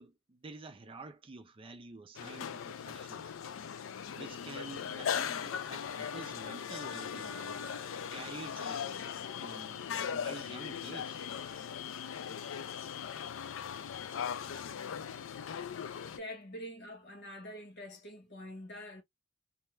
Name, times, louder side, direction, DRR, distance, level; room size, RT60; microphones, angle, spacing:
voice 1, 0.0-3.3 4.1-7.6 8.1-11.2, right 3 dB, 25° right, 0.4 m, -49 dB
sound 1, 2.1-16.2, left 7 dB, 75° left, 0.4 m, -39 dB
voice 2, 15.5-19.0, equal, 55° left, 1.3 m, -46 dB
2.7 x 2.1 x 3.1 m
head